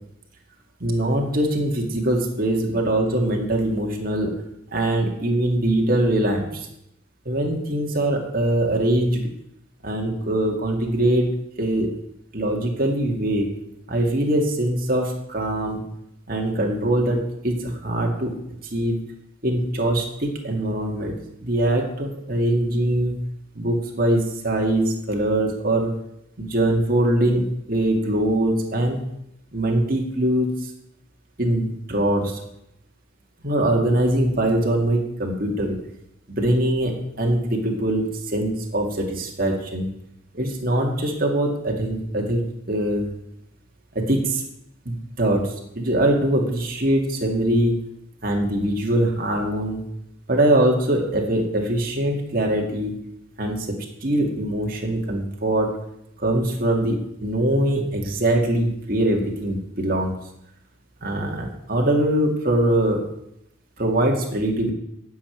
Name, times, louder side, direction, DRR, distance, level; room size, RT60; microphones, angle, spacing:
voice 1, 0.8-4.3 4.7-6.7 7.3-9.3 9.8-11.3 11.6-11.9 12.3-13.5 13.9-15.8 16.3-18.4 18.7-19.1 19.4-21.2 21.4-23.2 23.5-25.9 26.4-29.0 29.5-30.7 31.4-32.4 33.4-35.8 36.3-39.9 40.3-42.4 42.7-43.1 43.9-44.4 44.9-47.9 48.2-49.8 50.3-52.9 53.4-55.7 56.2-60.2 61.0-63.0 63.8-64.7, right 1 dB, 45° right, 1 dB, 2.2 m, -22 dB
10.0 x 7.1 x 9.1 m, 0.79 s
head